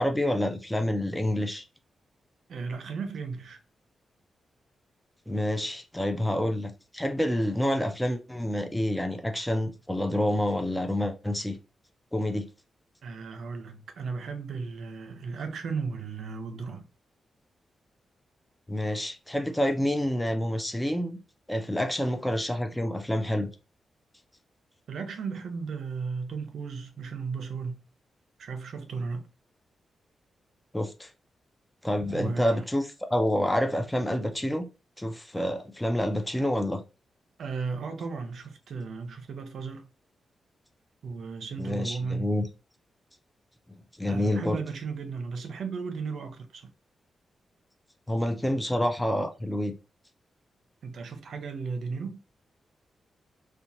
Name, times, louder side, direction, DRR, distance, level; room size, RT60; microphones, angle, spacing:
voice 1, 0.0-1.6 5.3-11.6 12.1-12.5 18.7-21.2 21.5-23.5 30.7-31.1 31.8-34.7 35.0-36.8 41.6-42.5 44.0-44.6 48.1-49.7, left 1 dB, 5° left, 0.4 m, -28 dB
voice 2, 2.5-3.6 13.0-16.9 24.9-27.8 28.4-29.3 32.1-32.6 37.4-39.9 41.0-42.3 44.1-46.7 50.8-52.2, right 5 dB, 75° right, 0.6 m, -35 dB
2.8 x 2.1 x 2.6 m
wide cardioid pair, 115°, 0 cm